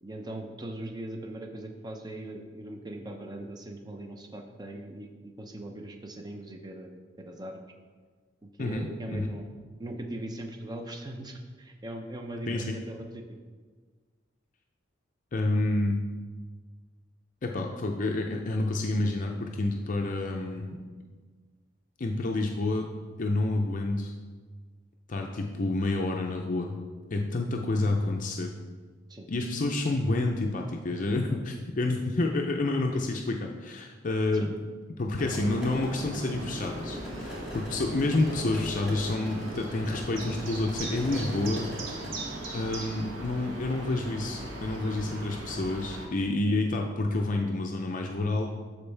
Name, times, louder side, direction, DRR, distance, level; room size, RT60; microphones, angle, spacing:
voice 1, 0.0-7.6 8.4-9.5 9.8-13.4 29.1-29.3 34.3-34.5, right 1 dB, 20° right, 4 dB, 0.6 m, -40 dB
voice 2, 8.6-9.3 12.5-12.8 15.3-16.0 17.4-20.8 22.0-22.9 23.2-24.1 25.1-26.8 27.1-28.5 29.3-34.5 35.0-41.7 42.5-48.5, left 2 dB, 40° left, 2 dB, 0.5 m, -29 dB
sound 1, 35.1-42.2, left 1 dB, ahead, 1.5 m, -43 dB
sound 2, 35.2-46.1, right 1 dB, 80° right, 1.3 m, -38 dB
12.5 x 4.4 x 3.3 m, 1.5 s
head